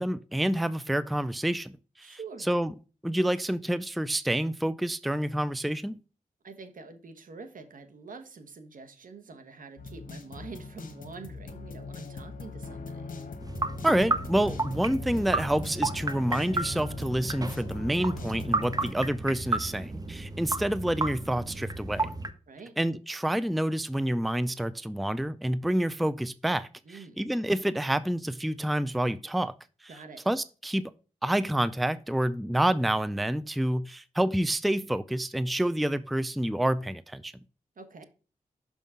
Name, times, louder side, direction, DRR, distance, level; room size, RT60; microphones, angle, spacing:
voice 1, 0.0-2.2 2.5-2.7 3.0-6.0 13.8-22.1 22.8-29.5 29.8-29.9 30.3-30.9 31.2-37.3, right 1 dB, ahead, 0.4 m, -28 dB
voice 2, 2.0-2.5 6.4-13.1 22.5-22.8 26.8-27.2 29.9-30.2 37.8-38.0, right 4 dB, 70° right, 1.1 m, -46 dB
sound 1, 9.8-18.9, left 4 dB, 70° left, 1.1 m, -41 dB
sound 2, 13.4-22.3, right 2 dB, 25° right, 0.8 m, -33 dB
6.2 x 3.6 x 5.5 m
cardioid pair, 45°, 15 cm